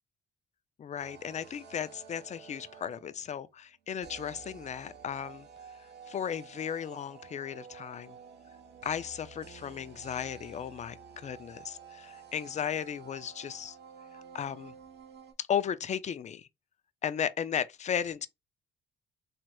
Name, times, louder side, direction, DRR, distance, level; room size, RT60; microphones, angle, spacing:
voice 1, 0.8-5.5 6.1-8.2 8.8-13.8 14.1-14.7 15.5-16.5 17.0-18.3, left 8 dB, 35° left, 0.4 m, -35 dB
sound 1, 1.0-3.3 4.0-15.3, right 6 dB, 60° right, 0.9 m, -51 dB
3.2 x 2.9 x 2.2 m
cardioid pair, 90°, 20 cm